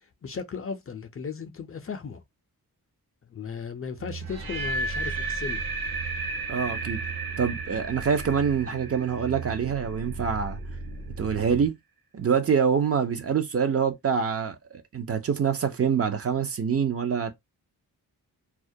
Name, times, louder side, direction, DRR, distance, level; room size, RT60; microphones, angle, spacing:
voice 1, 0.2-2.2 3.3-5.6, left 6 dB, 40° left, 0.4 m, -36 dB
sound 1, 4.0-11.7, right 4 dB, 60° right, 1.1 m, -38 dB
sound 2, 4.2-10.3, right 3 dB, 85° right, 0.7 m, -34 dB
voice 2, 6.5-7.0 7.4-10.6 11.2-11.7 12.1-17.3, right 7 dB, 40° right, 0.4 m, -25 dB
2.3 x 2.1 x 2.6 m
wide cardioid pair, 110°, 36 cm